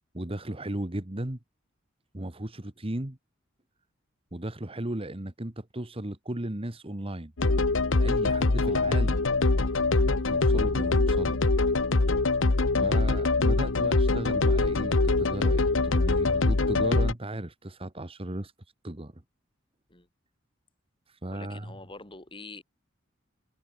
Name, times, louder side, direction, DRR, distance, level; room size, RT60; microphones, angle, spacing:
voice 1, 0.1-1.4 2.1-3.2 4.3-7.3 8.0-9.2 10.3-11.4 12.8-18.5 18.8-19.2 21.2-21.7, right 1 dB, 30° right, 1.7 m, -35 dB
sound 1, 7.4-17.1, left 3 dB, 80° left, 1.1 m, -24 dB
voice 2, 21.3-22.6, left 3 dB, 25° left, 4.6 m, -45 dB
head